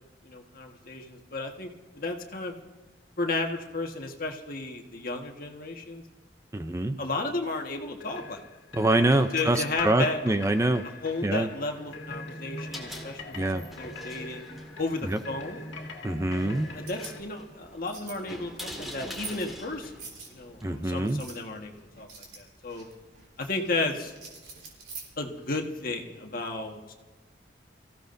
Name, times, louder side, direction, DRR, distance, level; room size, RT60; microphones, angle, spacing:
voice 1, 0.2-2.5 3.2-6.0 7.0-8.4 9.0-10.2 11.0-14.4 14.8-15.8 16.7-19.9 20.3-22.9 23.4-24.1 25.2-26.9, left 3 dB, 55° left, 2 dB, 1.5 m, -33 dB
voice 2, 6.5-7.0 8.7-10.8 11.2-11.5 13.4-13.6 15.0-15.2 16.0-16.7 20.6-21.2, right 1 dB, 15° right, 8 dB, 0.5 m, -25 dB
sound 1, 7.7-17.2, left 2 dB, 85° left, 1.8 m, -42 dB
sound 2, 12.5-21.2, equal, ahead, 2.1 m, -45 dB
sound 3, 16.7-25.7, right 4 dB, 65° right, 4.0 m, -48 dB
25.5 x 15.5 x 2.6 m, 1.2 s
head